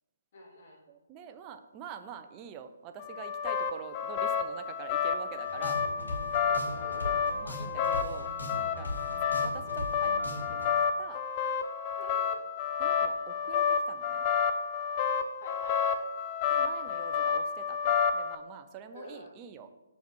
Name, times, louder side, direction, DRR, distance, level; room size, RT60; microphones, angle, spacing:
voice 1, 0.3-0.8 6.5-7.2 12.0-12.4 15.4-16.0 18.9-19.4, left 2 dB, 45° left, -2 dB, 2.2 m, -47 dB
voice 2, 0.9-5.8 7.4-8.9 9.4-10.7 11.0-11.2 12.0-12.1 12.8-14.2 16.5-19.7, right 7 dB, 25° right, 8 dB, 0.6 m, -46 dB
sound 1, 3.0-18.4, left 6 dB, 30° left, 0.6 m, -30 dB
sound 2, 5.5-10.7, left 1 dB, 85° left, 2.5 m, -39 dB
5.7 x 4.2 x 6.2 m, 1.1 s
figure-of-eight pair, 140°, 0 cm